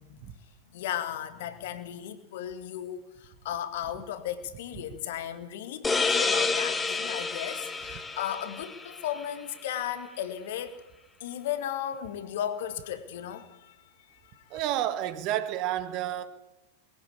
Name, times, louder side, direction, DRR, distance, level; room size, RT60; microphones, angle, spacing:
voice 1, 0.7-10.8 11.2-13.8 14.1-14.4, left 10 dB, 55° left, 1.9 m, -35 dB
sound 1, 5.8-9.3, left 4 dB, 15° left, 2.1 m, -29 dB
voice 2, 14.5-16.2, right 12 dB, 40° right, 1.6 m, -30 dB
21.5 x 15.5 x 8.5 m
figure-of-eight pair, 90°, 0 cm